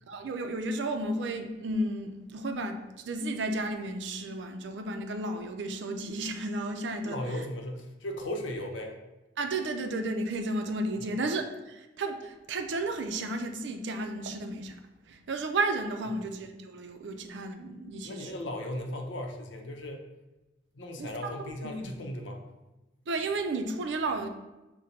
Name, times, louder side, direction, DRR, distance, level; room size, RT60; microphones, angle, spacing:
voice 1, 0.1-7.2 9.4-14.8 15.1-18.4 21.0-22.0 23.1-24.3, right 2 dB, 75° right, 0.5 m, -33 dB
voice 2, 7.1-9.0 11.0-11.1 18.0-20.1 20.7-22.4, left 1 dB, 80° left, 0.6 m, -37 dB
5.0 x 2.2 x 4.2 m
head